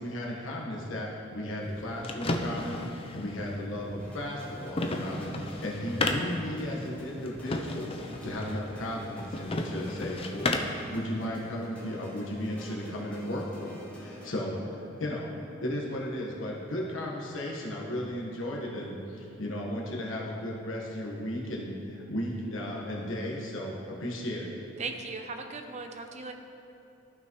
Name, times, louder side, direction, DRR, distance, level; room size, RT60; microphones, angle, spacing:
voice 1, 0.0-10.5 10.8-15.4 15.6-24.5, left 1 dB, 75° left, -3 dB, 1.4 m, -35 dB
sound 1, 1.6-10.9, left 2 dB, 30° left, 0.5 m, -34 dB
sound 2, 4.0-14.3, equal, 5° left, 1.8 m, -48 dB
voice 2, 24.8-26.3, right 3 dB, 35° right, 5 dB, 0.6 m, -38 dB
14.5 x 5.9 x 3.1 m, 2.7 s
head